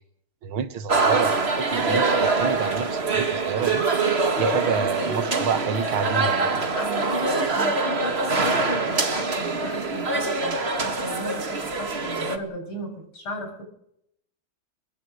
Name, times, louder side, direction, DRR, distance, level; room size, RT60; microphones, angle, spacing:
voice 1, 0.4-4.1 4.4-6.6, right 7 dB, 85° right, 2.2 m, -28 dB
sound 1, 0.9-12.4, right 3 dB, 30° right, 2.0 m, -24 dB
sound 2, 1.2-9.0, right 2 dB, 60° right, 6.5 m, -42 dB
voice 2, 6.8-13.6, left 1 dB, 85° left, 8.1 m, -34 dB
24.0 x 21.0 x 6.4 m
omnidirectional pair, 2.3 m